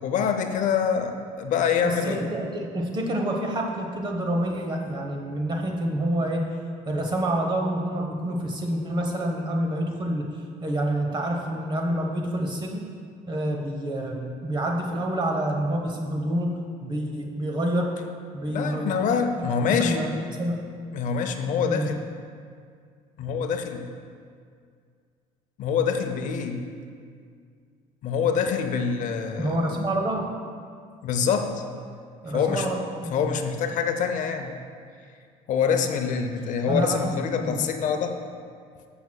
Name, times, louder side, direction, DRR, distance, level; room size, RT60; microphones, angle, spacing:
voice 1, 0.0-2.3 18.5-20.0 20.9-22.0 23.2-23.8 25.6-26.6 28.0-29.7 31.0-31.6 32.3-32.7 33.1-34.5 35.5-38.2, left 6 dB, 60° left, 6 dB, 0.7 m, -25 dB
voice 2, 1.8-6.5 6.9-10.3 10.6-12.8 13.3-17.9 18.3-19.1 19.7-20.1 20.4-20.6 21.7-21.9 29.4-30.3 32.2-33.2 36.7-37.1 37.4-37.6, right 1 dB, 30° right, 1 dB, 0.9 m, -27 dB
13.5 x 6.0 x 2.3 m, 2.2 s
cardioid pair, 110°, 15 cm